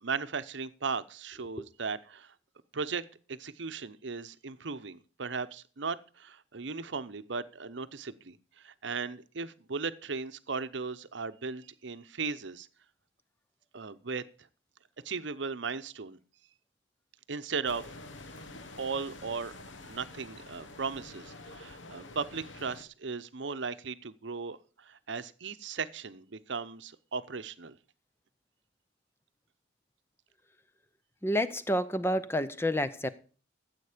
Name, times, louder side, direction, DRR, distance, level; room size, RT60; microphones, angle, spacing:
voice 1, 0.0-2.3 2.7-12.7 13.7-14.2 15.0-16.2 17.3-17.9 18.8-19.5 19.9-27.8, right 5 dB, 70° right, 0.8 m, -37 dB
sound 1, 17.7-22.8, left 2 dB, 75° left, 1.2 m, -48 dB
voice 2, 31.2-33.1, equal, 10° left, 0.6 m, -29 dB
14.0 x 8.0 x 5.0 m
head